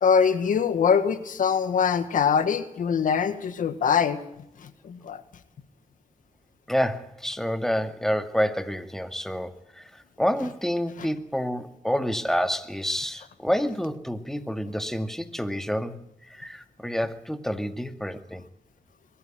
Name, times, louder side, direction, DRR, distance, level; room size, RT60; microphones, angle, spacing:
voice 1, 0.0-4.2 4.6-5.2, left 6 dB, 85° left, 11 dB, 1.7 m, -23 dB
voice 2, 6.7-18.4, equal, 5° left, 8 dB, 2.1 m, -28 dB
23.0 x 14.5 x 9.1 m, 0.80 s
cardioid pair, 65°, 13 cm